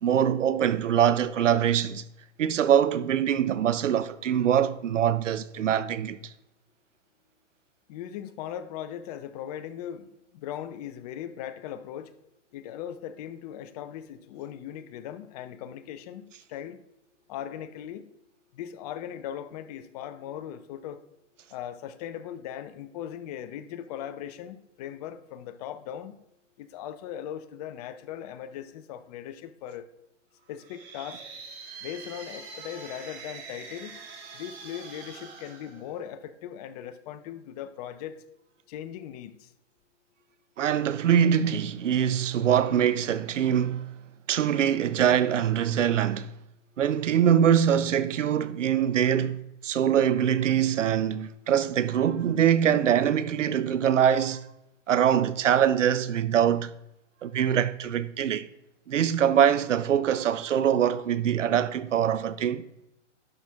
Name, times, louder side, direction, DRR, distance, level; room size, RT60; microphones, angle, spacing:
voice 1, 0.0-2.0 2.4-6.2 40.6-43.9 44.3-46.3 46.8-54.4 54.9-56.7 57.2-58.5 58.9-62.7, right 9 dB, 85° right, 0.7 m, -23 dB
voice 2, 7.9-12.1 12.5-16.8 17.3-18.1 18.5-21.0 21.5-26.1 26.6-29.9 30.5-31.2 31.8-34.0 34.3-38.3 38.7-39.5, left 10 dB, 35° left, 0.5 m, -39 dB
sound 1, 30.5-36.4, right 4 dB, 30° right, 1.9 m, -44 dB
11.0 x 6.0 x 3.5 m
hypercardioid pair, 130°, 36 cm